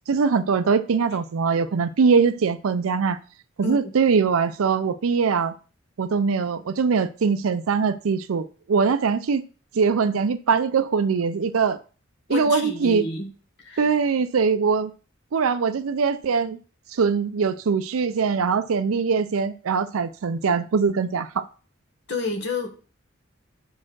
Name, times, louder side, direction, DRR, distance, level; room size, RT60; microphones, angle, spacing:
voice 1, 0.1-3.2 3.6-5.5 6.0-9.4 9.7-11.8 12.3-13.0 13.8-14.9 15.3-16.6 16.9-21.4, right 5 dB, 85° right, 10 dB, 0.5 m, -22 dB
voice 2, 12.3-13.3 13.6-13.9 22.1-22.7, left 2 dB, 55° left, 3 dB, 1.4 m, -29 dB
5.5 x 4.3 x 6.1 m, 0.36 s
head